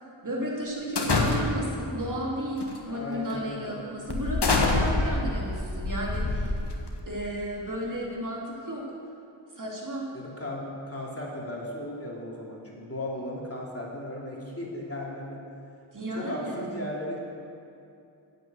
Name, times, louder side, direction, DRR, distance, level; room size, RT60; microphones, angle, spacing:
voice 1, 0.2-6.6 7.1-8.8 9.5-10.1 15.9-16.8, equal, 40° right, -3 dB, 2.9 m, -33 dB
sound 1, 1.0-1.8 2.6-2.8 3.3-3.4 4.1-7.0, left 2 dB, 55° left, 1.6 m, -26 dB
voice 2, 2.9-3.8 4.6-5.4 10.1-15.4 16.1-17.2, left 1 dB, 30° left, -3 dB, 3.0 m, -36 dB
9.2 x 8.3 x 7.8 m, 2.6 s
cardioid pair, 45°, 47 cm